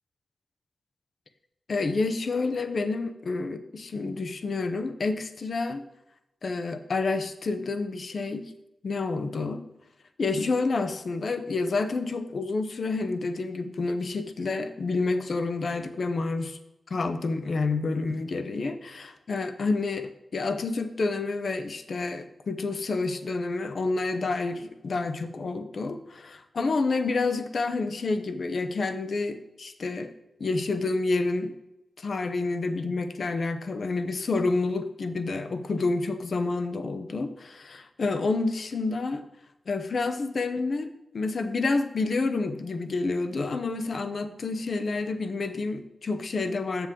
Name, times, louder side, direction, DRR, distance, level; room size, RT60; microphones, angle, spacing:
voice 1, 1.7-5.8 6.4-8.5 8.8-9.6 10.2-16.6 16.9-30.1 30.4-31.5 32.0-39.3 39.7-46.9, left 3 dB, 65° left, 8 dB, 0.7 m, -29 dB
7.4 x 7.0 x 3.7 m, 0.91 s
cardioid pair, 70°, 0 cm